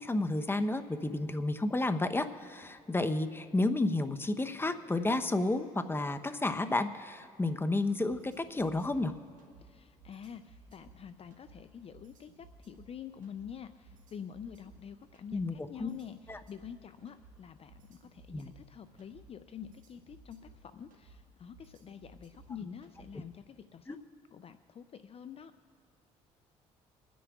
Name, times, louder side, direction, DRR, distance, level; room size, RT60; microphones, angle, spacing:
voice 1, 0.0-9.1 15.3-15.9 16.3-16.4 18.3-18.5 23.9-24.0, left 2 dB, 15° left, 9 dB, 0.8 m, -31 dB
sound 1, 8.1-23.3, right 3 dB, 65° right, 1.9 m, -58 dB
voice 2, 9.6-24.0 24.3-25.5, left 8 dB, 45° left, 11 dB, 0.5 m, -47 dB
28.5 x 10.0 x 2.4 m, 2.2 s
supercardioid pair, 60°, 14 cm